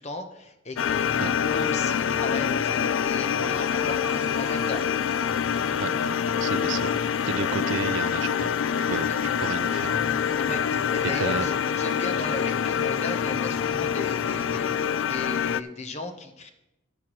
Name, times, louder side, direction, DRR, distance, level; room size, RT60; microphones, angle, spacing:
voice 1, 0.0-4.8 6.6-6.7 9.0-9.2 10.5-16.5, left 2 dB, 35° left, 6 dB, 1.0 m, -36 dB
sound 1, 0.8-15.6, left 8 dB, 75° left, 0.3 m, -26 dB
sound 2, 0.9-14.8, right 1 dB, 5° right, 0.5 m, -43 dB
voice 2, 5.8-6.1 6.4-7.0 7.3-8.5 8.9-9.1 9.4-10.1 11.2-11.5, right 6 dB, 75° right, 16 dB, 0.4 m, -32 dB
12.0 x 10.5 x 3.1 m, 0.91 s
head